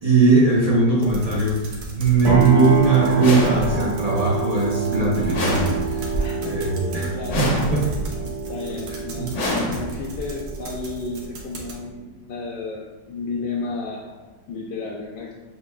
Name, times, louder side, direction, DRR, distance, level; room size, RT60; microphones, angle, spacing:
voice 1, 0.0-6.1 6.4-7.1 7.7-7.8 9.2-9.3, right 3 dB, 40° right, -5 dB, 0.5 m, -20 dB
sound 1, 1.0-11.8, right 3 dB, 65° right, 1.2 m, -34 dB
sound 2, 2.2-12.0, right 7 dB, 85° right, 2.2 m, -26 dB
sound 3, 3.2-4.1 5.3-6.2 7.3-8.1 9.3-10.2, left 1 dB, 55° left, 0.9 m, -27 dB
voice 2, 6.2-7.5 8.5-15.3, left 4 dB, 90° left, -3 dB, 1.3 m, -33 dB
7.1 x 2.9 x 2.2 m, 1.1 s
omnidirectional pair, 1.9 m